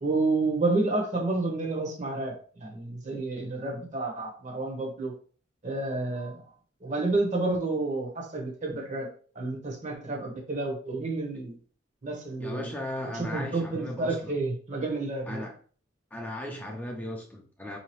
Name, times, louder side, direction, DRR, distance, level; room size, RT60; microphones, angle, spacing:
voice 1, 0.0-2.4 2.6-5.1 5.6-6.4 6.8-9.1 9.3-11.6 12.0-12.7 13.1-15.5, right 2 dB, 40° right, 1 dB, 0.9 m, -30 dB
voice 2, 12.4-14.4 15.3-15.6 16.1-17.8, left 1 dB, 10° left, 0 dB, 0.5 m, -37 dB
3.9 x 2.8 x 3.0 m, 0.43 s
head